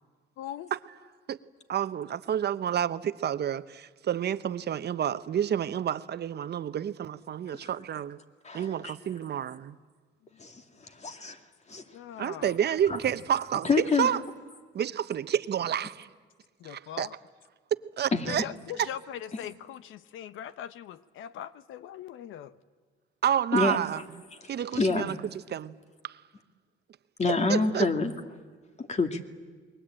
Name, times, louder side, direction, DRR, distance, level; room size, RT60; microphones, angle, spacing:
voice 1, 0.4-0.7 11.9-12.6 16.6-17.2 18.2-22.6, left 10 dB, 85° left, 0.9 m, -41 dB
voice 2, 1.7-8.2 8.5-9.8 12.2-14.2 14.7-16.1 16.6-17.1 18.0-18.4 23.2-24.0 24.5-25.2 25.5-25.7 26.0-26.2 27.3-27.9, right 9 dB, 55° right, 0.9 m, -29 dB
voice 3, 8.4-8.9 10.4-10.5 11.0-11.4 11.7-11.8 13.6-14.1 18.1-18.3 23.5-23.8 24.7-25.2 27.2-28.1 28.8-29.2, left 3 dB, 35° left, 2.4 m, -26 dB
29.0 x 22.0 x 8.9 m
cardioid pair, 90°, 20 cm